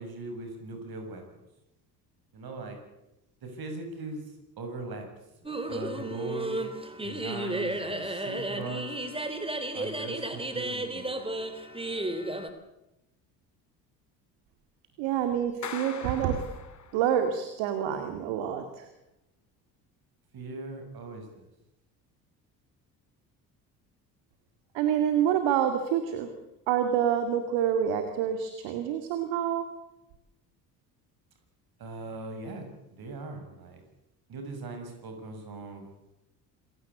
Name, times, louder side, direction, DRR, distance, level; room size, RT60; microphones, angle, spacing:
voice 1, 0.0-1.4 2.3-2.8 3.4-4.2 4.6-5.1 5.7-6.6 7.0-9.0 9.7-11.3 20.3-21.5 31.8-33.8 34.3-35.8, right 2 dB, 45° right, 5 dB, 7.4 m, -40 dB
sound 1, 5.5-12.5, right 1 dB, 10° right, 3.5 m, -33 dB
voice 2, 15.0-16.4 16.9-18.9 24.7-26.3 26.7-29.7, right 9 dB, 65° right, 7 dB, 2.4 m, -27 dB
Clapping, 15.6-17.3, left 6 dB, 35° left, 2.8 m, -41 dB
27.0 x 16.5 x 8.5 m, 0.93 s
figure-of-eight pair, 55°, 48 cm